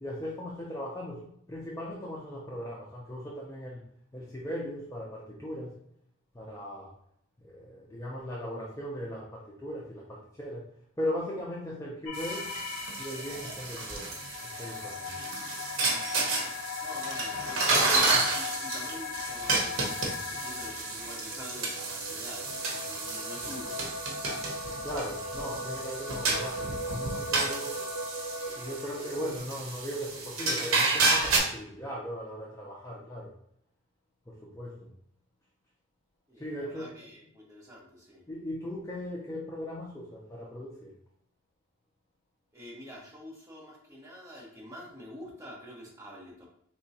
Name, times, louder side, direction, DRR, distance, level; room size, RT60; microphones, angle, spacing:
voice 1, 0.0-1.2 1.5-3.8 4.1-5.7 6.3-6.9 7.4-10.6 11.0-12.5 13.0-14.1 14.6-15.1 24.8-27.7 28.6-33.3 34.4-34.9 36.4-36.8 38.3-40.9, equal, 15° left, -4 dB, 0.5 m, -38 dB
sound 1, 12.1-29.4, left 3 dB, 70° left, 0.6 m, -39 dB
sound 2, 12.1-31.4, right 3 dB, 75° right, 0.9 m, -31 dB
voice 2, 16.8-20.0 20.3-23.7 36.3-38.2 42.5-46.4, equal, 15° right, -4 dB, 1.2 m, -46 dB
4.4 x 3.0 x 2.8 m, 0.70 s
head